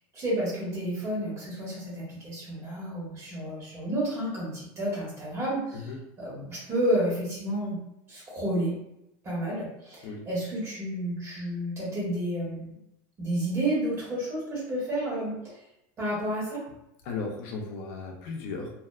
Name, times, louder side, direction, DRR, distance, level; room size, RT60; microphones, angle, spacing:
voice 1, 0.1-5.9 6.2-7.8 8.1-8.7 9.2-12.8 13.2-15.5 16.0-16.6, right 1 dB, 30° right, -6 dB, 1.3 m, -31 dB
voice 2, 17.0-18.7, left 4 dB, 65° left, 1 dB, 0.5 m, -35 dB
2.7 x 2.2 x 2.3 m, 0.83 s
supercardioid pair, 135°, 10 cm